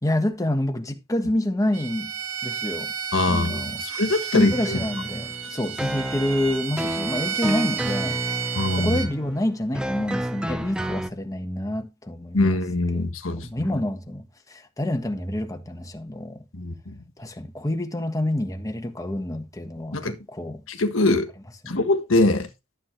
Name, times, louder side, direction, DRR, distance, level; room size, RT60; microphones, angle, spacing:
voice 1, 0.0-2.1 2.4-2.9 3.3-3.8 4.3-8.2 8.8-12.5 12.9-16.4 17.2-20.6 21.6-21.8, left 1 dB, 15° left, 1.4 m, -27 dB
Bowed string instrument, 1.7-9.1, right 7 dB, 90° right, 1.5 m, -32 dB
voice 2, 3.1-4.8 8.5-9.0 12.3-13.7 16.5-17.0 19.9-20.2 20.7-21.3 21.7-22.5, left 2 dB, 70° left, 1.5 m, -23 dB
sound 1, 4.5-11.1, right 1 dB, 5° right, 0.8 m, -31 dB
12.5 x 7.6 x 3.2 m
head